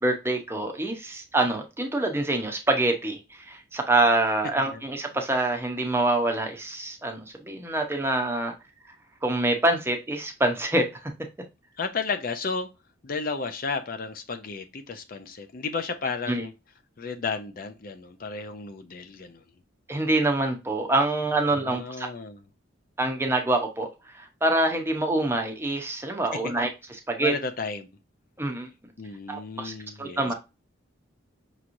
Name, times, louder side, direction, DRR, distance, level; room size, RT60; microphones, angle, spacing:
voice 1, 0.0-8.5 9.2-11.1 16.3-16.4 19.9-22.1 23.0-23.9 24.1-26.7 27.1-27.3 28.4-28.7 29.3-29.7 30.0-30.3, right 2 dB, 10° right, 0.7 m, -25 dB
voice 2, 11.8-12.7 13.0-16.5 17.0-19.4 21.5-22.4 26.6-26.7 27.2-27.9 29.0-30.3, left 4 dB, 45° left, 0.5 m, -33 dB
5.9 x 3.0 x 2.5 m
head